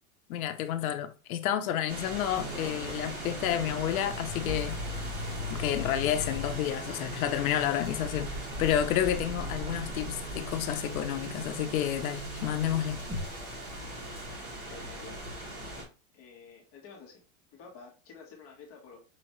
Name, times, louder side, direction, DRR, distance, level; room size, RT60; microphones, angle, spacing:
voice 1, 0.3-4.7 5.5-13.0, left 11 dB, 75° left, 0.8 m, -30 dB
sound 1, 1.9-15.8, equal, 35° right, 2.3 m, -39 dB
sound 2, 2.4-13.3, left 1 dB, 10° right, 1.1 m, -41 dB
voice 2, 14.7-15.3 16.1-17.2 17.5-19.0, left 5 dB, 30° left, 1.4 m, -50 dB
5.6 x 2.9 x 3.0 m
supercardioid pair, 165°, 43 cm